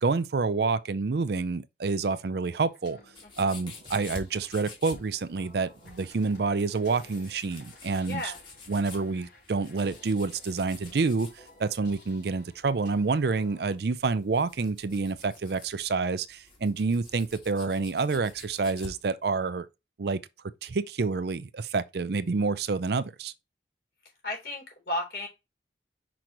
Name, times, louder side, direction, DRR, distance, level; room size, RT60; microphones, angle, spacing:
voice 1, 0.0-3.0 3.4-8.2 8.7-11.3 11.6-19.7 20.0-20.2 20.6-23.3, right 4 dB, 65° right, 0.5 m, -28 dB
sound 1, 2.7-13.7, left 2 dB, 90° left, 4.3 m, -55 dB
sound 2, 3.1-19.0, left 3 dB, 30° left, 1.8 m, -50 dB
voice 2, 8.0-8.4 24.2-25.3, left 1 dB, 70° left, 3.7 m, -33 dB
6.1 x 5.1 x 3.0 m
head